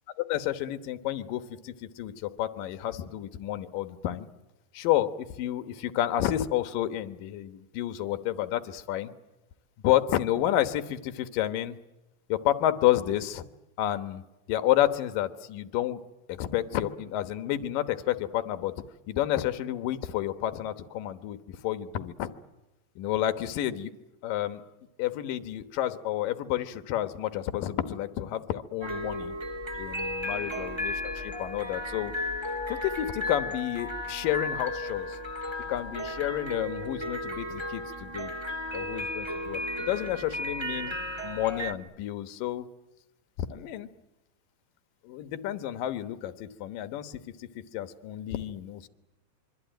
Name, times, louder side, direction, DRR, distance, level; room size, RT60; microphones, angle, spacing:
voice 1, 0.3-4.3 4.7-9.1 9.8-11.8 12.3-13.5 13.8-16.0 16.3-18.7 19.1-22.3 23.0-23.9 24.2-24.6 25.0-29.3 29.8-32.1 32.7-35.2 35.7-38.3 38.7-40.9 41.2-42.7 43.5-43.9 45.0-48.9, left 12 dB, 70° left, 10 dB, 2.7 m, -30 dB
sound 1, 28.8-41.7, left 1 dB, 35° right, 0.4 m, -34 dB
26.0 x 24.0 x 9.2 m, 0.98 s
omnidirectional pair, 4.3 m